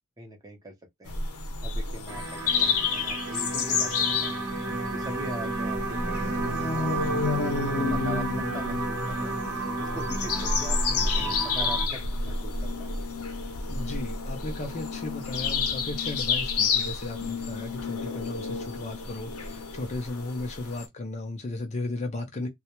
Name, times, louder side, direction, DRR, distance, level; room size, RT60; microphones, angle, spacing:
voice 1, 0.2-1.2 1.6-4.5 4.9-9.4 9.8-13.1, right 1 dB, 15° right, 0.6 m, -42 dB
sound 1, 1.1-20.9, left 4 dB, 75° left, 0.7 m, -30 dB
sound 2, 2.1-11.9, right 3 dB, 75° right, 0.9 m, -32 dB
voice 2, 13.7-22.5, left 2 dB, 30° left, 0.4 m, -35 dB
2.3 x 2.1 x 2.9 m
head